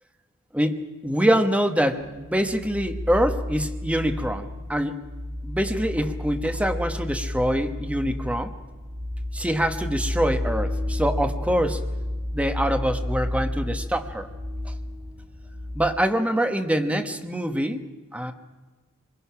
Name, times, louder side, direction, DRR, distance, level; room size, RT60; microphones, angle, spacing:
voice 1, 0.5-5.0 5.4-8.5 9.3-11.8 12.3-14.3 14.6-14.7 15.7-17.8 18.1-18.3, equal, 5° right, 7 dB, 1.2 m, -25 dB
sound 1, 2.0-15.9, left 1 dB, 50° right, 4.4 m, -31 dB
26.5 x 22.0 x 5.9 m, 1.3 s
head